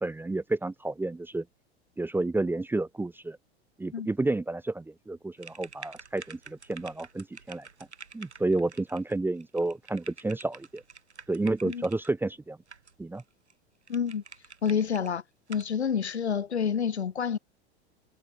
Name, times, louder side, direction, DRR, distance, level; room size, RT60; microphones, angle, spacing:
voice 1, 0.0-1.4 2.0-3.4 3.8-7.7 8.1-10.8 11.3-12.6 13.0-13.2, right 2 dB, 5° right, 0.7 m, -30 dB
sound 1, 5.4-12.1 12.7-13.2 13.5-13.6 13.9-15.1 15.5-15.7, right 5 dB, 85° right, 4.8 m, -49 dB
voice 2, 13.9-14.2 14.6-15.2 15.5-17.4, left 7 dB, 80° left, 1.7 m, -28 dB
figure-of-eight pair, 90°, 33 cm